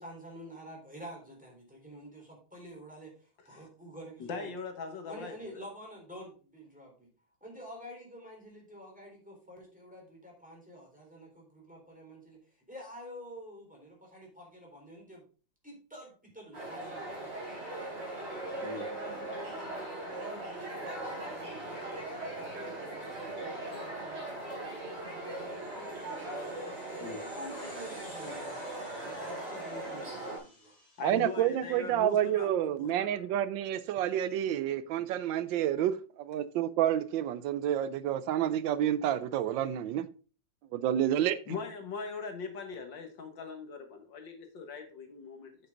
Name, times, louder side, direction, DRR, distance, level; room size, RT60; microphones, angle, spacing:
voice 1, 0.0-4.5 5.0-7.1 7.4-15.2 15.6-17.9 18.5-24.6 25.0-26.6 27.2-30.8, equal, 5° right, 3.7 m, -49 dB
voice 2, 4.2-5.6 18.6-18.9 27.0-27.2 31.0-33.2 41.5-45.6, left 5 dB, 75° left, 2.3 m, -41 dB
sound 1, 16.5-30.4, right 1 dB, 35° right, 3.8 m, -39 dB
sound 2, 25.3-32.1, left 1 dB, 20° left, 2.4 m, -57 dB
voice 3, 31.0-40.1 40.7-41.4, right 11 dB, 80° right, 1.3 m, -29 dB
8.5 x 6.8 x 3.7 m
omnidirectional pair, 2.0 m